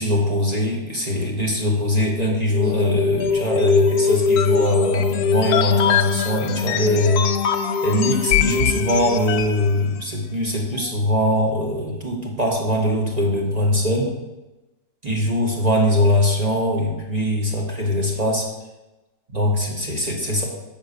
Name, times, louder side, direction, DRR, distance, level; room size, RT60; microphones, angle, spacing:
voice 1, 0.0-7.3 7.8-14.1 15.0-18.5 19.3-20.4, left 1 dB, 25° right, -2 dB, 1.3 m, -21 dB
sound 1, 2.5-9.7, left 6 dB, 70° left, 1.0 m, -22 dB
7.1 x 4.4 x 6.5 m, 1.0 s
omnidirectional pair, 1.9 m